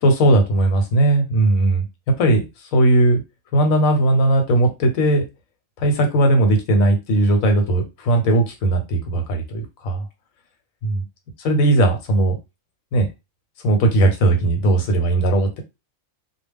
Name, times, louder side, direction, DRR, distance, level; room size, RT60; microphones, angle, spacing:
voice 1, 0.0-1.8 2.2-2.4 2.7-3.2 3.5-5.2 5.8-10.0 10.8-11.0 11.4-12.3 12.9-13.1 13.6-15.6, right 1 dB, 80° left, 4 dB, 1.1 m, -18 dB
2.3 x 2.2 x 3.4 m, 0.25 s
omnidirectional pair, 1.4 m